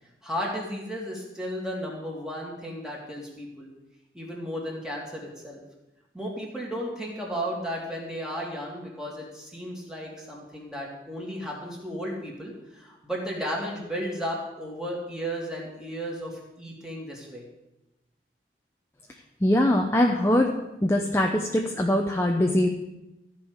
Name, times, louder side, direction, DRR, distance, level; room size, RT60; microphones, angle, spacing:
voice 1, 0.2-3.7 4.1-5.6 6.1-17.4, equal, 5° right, -3 dB, 2.6 m, -34 dB
voice 2, 19.4-20.5 20.8-22.7, left 1 dB, 15° left, 2 dB, 0.7 m, -22 dB
14.5 x 5.5 x 8.1 m, 0.94 s
head